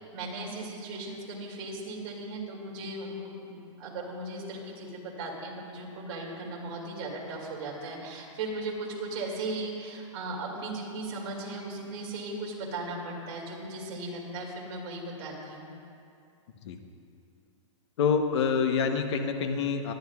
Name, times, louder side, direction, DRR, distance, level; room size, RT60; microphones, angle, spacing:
voice 1, 0.1-15.7, right 2 dB, 45° right, -3 dB, 2.5 m, -37 dB
voice 2, 18.0-19.9, left 6 dB, 55° left, 6 dB, 1.0 m, -26 dB
21.5 x 10.5 x 2.4 m, 2.5 s
hypercardioid pair, 160°, 17 cm